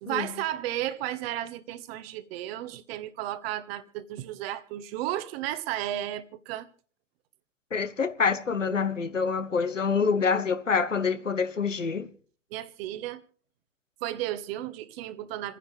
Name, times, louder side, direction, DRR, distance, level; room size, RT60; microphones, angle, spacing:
voice 1, 0.0-6.7 12.5-13.2 14.0-15.6, right 13 dB, 55° right, 1.4 m, -33 dB
voice 2, 7.7-12.1, left 5 dB, 90° left, 1.3 m, -26 dB
28.5 x 9.9 x 3.4 m
figure-of-eight pair, 90°, 36 cm